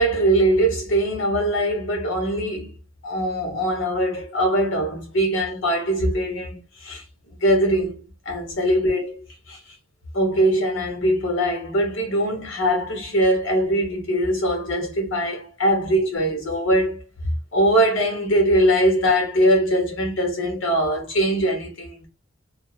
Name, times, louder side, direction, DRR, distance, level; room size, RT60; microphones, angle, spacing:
voice 1, 0.0-2.7 3.0-7.0 7.4-9.2 9.5-9.6 10.1-22.1, right 1 dB, 75° left, 1.1 m, -22 dB
2.6 x 2.1 x 2.4 m
head